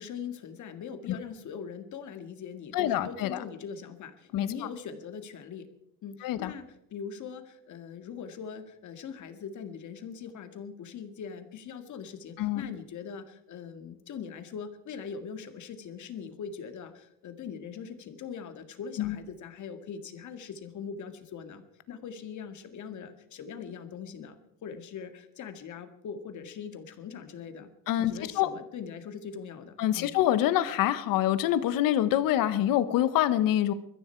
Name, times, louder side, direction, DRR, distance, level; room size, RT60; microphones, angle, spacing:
voice 1, 0.0-5.7 6.0-27.7 28.0-30.1, left 6 dB, 60° left, 8 dB, 2.1 m, -41 dB
voice 2, 2.7-3.4 4.3-4.5 6.2-6.5 12.4-12.7 19.0-19.2 27.9-28.5 29.8-33.7, left 12 dB, 90° left, 13 dB, 1.3 m, -26 dB
21.5 x 14.0 x 4.6 m, 0.78 s
cardioid pair, 115°, 33 cm